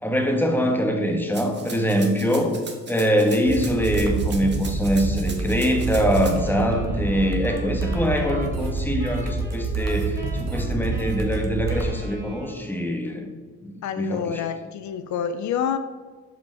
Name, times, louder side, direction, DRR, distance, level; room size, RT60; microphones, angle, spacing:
voice 1, 0.0-2.6 2.9-13.3 13.6-14.5, equal, 5° left, 2 dB, 1.3 m, -23 dB
Rattle (instrument), 1.3-6.3, right 4 dB, 35° right, 1.5 m, -39 dB
sound 1, 3.5-11.9, right 3 dB, 60° right, 1.3 m, -27 dB
sound 2, 6.3-12.9, equal, 10° right, 2.0 m, -41 dB
voice 2, 13.8-15.8, left 8 dB, 70° left, 10 dB, 0.5 m, -27 dB
5.8 x 5.1 x 5.7 m, 1.4 s
cardioid pair, 90°, 30 cm